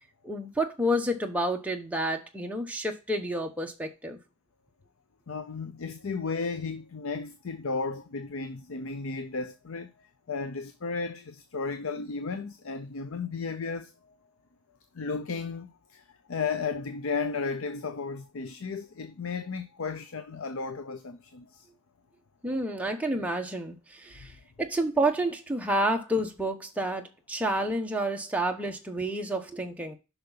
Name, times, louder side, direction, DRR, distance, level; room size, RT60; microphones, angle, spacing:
voice 1, 0.2-4.2 22.4-24.3 24.6-30.0, right 1 dB, 5° right, 1.0 m, -29 dB
voice 2, 5.3-14.1 14.9-21.7, left 4 dB, 65° left, 0.6 m, -34 dB
6.6 x 5.9 x 4.0 m
head